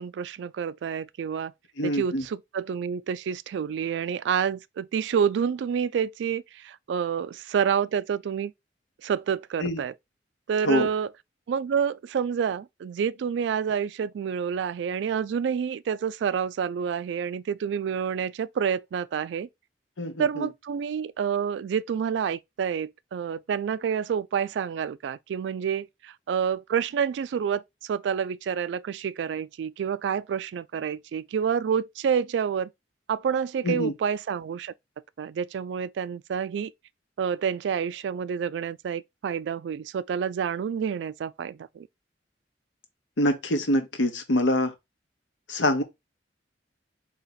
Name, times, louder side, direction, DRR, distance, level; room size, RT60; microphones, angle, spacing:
voice 1, 0.0-1.5 1.8-8.5 9.0-9.9 10.5-11.1 11.5-19.5 20.2-32.7 33.1-34.7 35.2-36.7 37.2-41.9, right 7 dB, 70° right, 0.3 m, -28 dB
voice 2, 1.8-2.2 9.6-9.8 10.6-10.9 20.0-20.5 33.6-33.9 43.2-44.7 45.5-45.8, left 1 dB, 85° left, 0.9 m, -25 dB
4.1 x 2.9 x 3.9 m
head